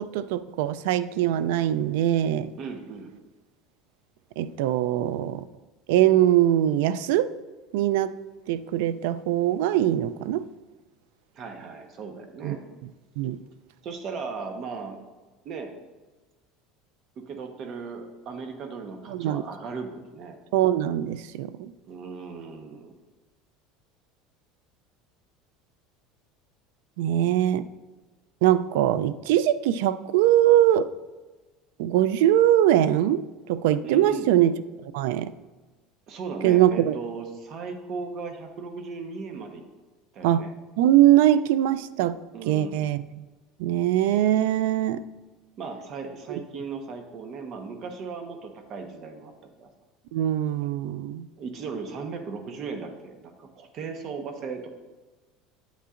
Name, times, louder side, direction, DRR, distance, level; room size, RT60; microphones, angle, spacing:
voice 1, 0.0-2.5 4.4-5.4 5.9-7.3 7.7-8.1 8.5-10.4 12.4-12.6 13.2-13.4 19.1-19.4 20.5-21.7 27.0-27.6 28.4-30.9 31.8-34.5 34.8-35.3 36.4-36.9 40.2-40.4 40.8-42.2 42.5-43.2 43.6-45.0 46.3-46.4 50.1-51.3, right 12 dB, 80° right, 15 dB, 0.4 m, -22 dB
voice 2, 2.6-3.1 11.3-12.6 13.8-15.0 15.4-15.7 17.2-20.4 21.9-23.0 33.8-34.3 36.1-39.6 40.1-40.5 42.3-42.9 45.6-49.3 49.6-49.7 51.4-54.7, right 5 dB, 40° right, 5 dB, 1.0 m, -37 dB
8.6 x 8.4 x 2.5 m, 1.2 s
cardioid pair, 155°, 0 cm